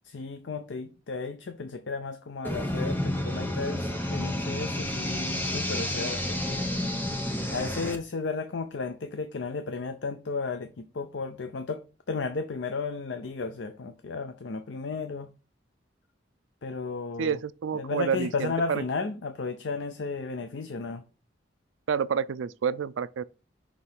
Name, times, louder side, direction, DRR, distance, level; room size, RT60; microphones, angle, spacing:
voice 1, 0.0-6.7 7.5-11.8 12.1-15.3 16.6-17.4 17.7-21.0, left 4 dB, 75° left, 0.5 m, -34 dB
sound 1, 2.4-8.0, left 1 dB, 10° left, 0.8 m, -30 dB
voice 2, 17.2-18.8 21.9-23.2, right 7 dB, 90° right, 0.4 m, -29 dB
6.1 x 3.2 x 5.5 m
head